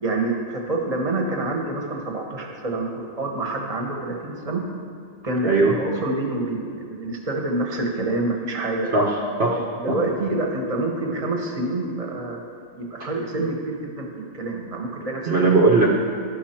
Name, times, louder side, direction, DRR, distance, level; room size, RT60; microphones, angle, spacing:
voice 1, 0.0-4.6 5.2-9.1 9.8-12.4 12.8-15.4, right 2 dB, 30° right, 1 dB, 1.0 m, -27 dB
voice 2, 5.4-5.8 8.9-9.1 9.4-9.6 9.9-10.0 13.0-13.1 15.2-15.9, right 3 dB, 55° right, -3 dB, 0.9 m, -18 dB
11.0 x 6.5 x 4.4 m, 2.3 s
omnidirectional pair, 1.4 m